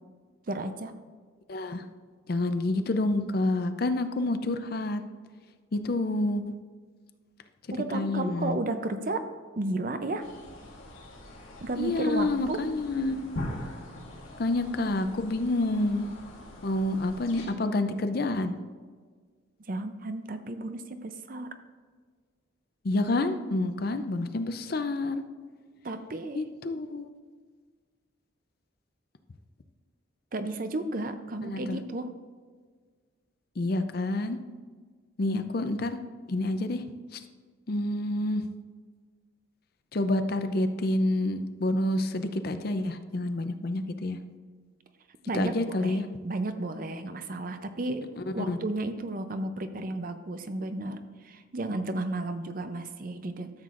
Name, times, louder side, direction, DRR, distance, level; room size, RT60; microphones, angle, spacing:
voice 1, 0.5-0.9 7.7-9.3 9.6-10.3 11.6-12.6 19.7-21.5 25.8-26.4 30.3-32.1 45.3-46.0 46.2-53.5, right 2 dB, 45° right, 9 dB, 0.5 m, -33 dB
voice 2, 1.5-1.8 2.3-5.0 5.7-6.4 7.9-8.6 11.8-13.2 14.4-16.1 16.6-18.5 22.8-25.2 26.3-27.1 31.4-31.8 33.6-34.4 35.2-36.0 36.3-36.8 37.1-37.2 37.7-38.4 39.9-44.2 45.3-46.0 48.3-48.6, left 2 dB, 50° left, 9 dB, 0.5 m, -28 dB
sound 1, 10.2-17.5, left 1 dB, 90° left, 2.0 m, -42 dB
13.0 x 7.4 x 2.5 m, 1.6 s
head